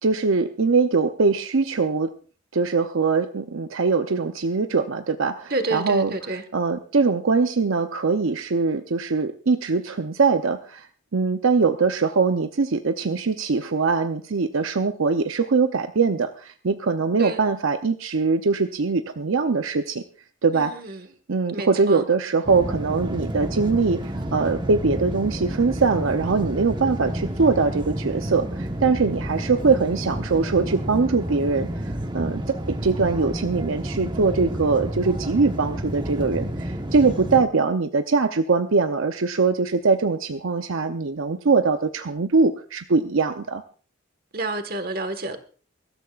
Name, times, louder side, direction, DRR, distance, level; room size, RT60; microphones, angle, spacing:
voice 1, 0.0-2.1 2.5-6.1 6.5-10.9 11.1-20.0 20.4-20.8 21.3-24.0 24.3-31.7 32.1-43.6, right 4 dB, 75° right, 0.7 m, -22 dB
voice 2, 5.5-6.4 17.2-17.4 20.5-21.0 21.5-22.0 44.3-45.4, right 2 dB, 45° right, 1.5 m, -29 dB
sound 1, 22.4-37.4, right 1 dB, 20° right, 1.1 m, -30 dB
23.5 x 13.5 x 2.4 m
head